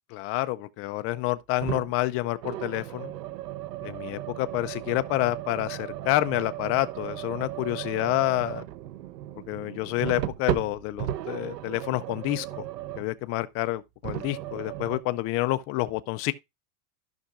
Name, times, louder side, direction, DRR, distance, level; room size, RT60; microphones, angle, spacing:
voice 1, 0.1-3.1 3.8-8.6 9.5-12.7 13.0-16.3, left 18 dB, 30° left, 0.4 m, -28 dB
sound 1, 1.6-2.0 2.4-13.2 14.0-15.0, right 13 dB, 85° right, 0.9 m, -35 dB
14.5 x 5.7 x 2.4 m
supercardioid pair, 140°, 47 cm